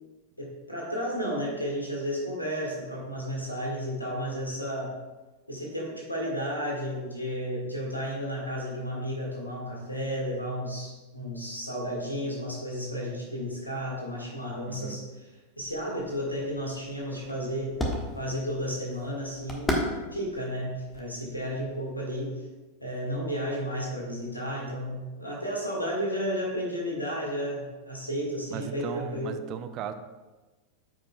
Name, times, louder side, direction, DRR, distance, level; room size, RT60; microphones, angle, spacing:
voice 1, 0.4-4.9 5.5-15.3 15.6-17.7 18.2-22.3 22.8-29.3, equal, 85° left, -3 dB, 1.8 m, -33 dB
voice 2, 14.7-15.0 28.5-29.9, right 9 dB, 35° right, 9 dB, 0.5 m, -37 dB
sound 1, 15.6-21.9, left 1 dB, 15° left, 1.4 m, -36 dB
13.5 x 5.2 x 2.3 m, 1.2 s
figure-of-eight pair, 90°, 0 cm